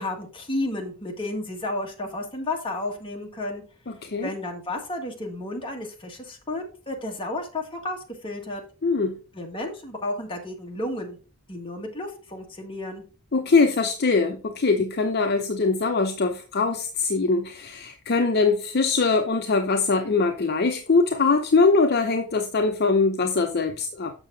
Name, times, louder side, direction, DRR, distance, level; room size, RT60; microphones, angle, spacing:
voice 1, 0.0-3.6 4.2-8.6 9.3-11.2 11.5-13.0, left 2 dB, 25° left, 1.6 m, -32 dB
voice 2, 3.9-4.3 8.8-9.1 13.3-24.1, left 4 dB, 45° left, 0.6 m, -22 dB
7.1 x 6.5 x 3.9 m
head